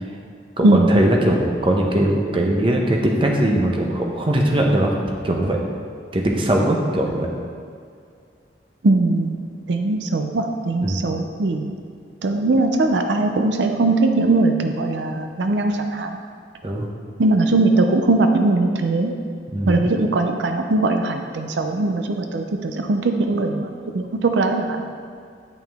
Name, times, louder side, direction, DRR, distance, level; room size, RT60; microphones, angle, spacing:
voice 1, 0.6-4.9 5.2-5.6 6.1-7.3 10.8-11.1 16.6-16.8 19.5-19.9, right 1 dB, 30° right, 0 dB, 0.8 m, -20 dB
voice 2, 8.8-9.4 9.7-11.7 12.2-16.2 17.2-19.1 19.7-24.9, right 2 dB, 85° right, 5 dB, 0.5 m, -20 dB
9.1 x 5.6 x 3.5 m, 2.2 s
head